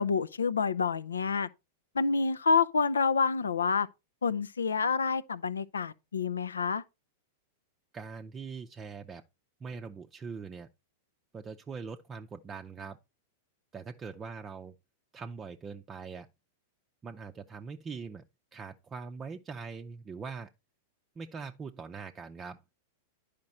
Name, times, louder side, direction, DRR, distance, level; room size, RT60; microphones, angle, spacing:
voice 1, 0.0-1.5 1.9-3.9 4.2-6.8, left 5 dB, 85° left, 0.5 m, -28 dB
voice 2, 7.9-9.2 9.6-10.7 11.3-13.0 13.7-14.7 15.1-16.3 17.0-18.2 18.5-20.5 21.2-22.6, right 5 dB, 20° right, 0.6 m, -42 dB
10.5 x 5.1 x 4.2 m
hypercardioid pair, 100°, 0 cm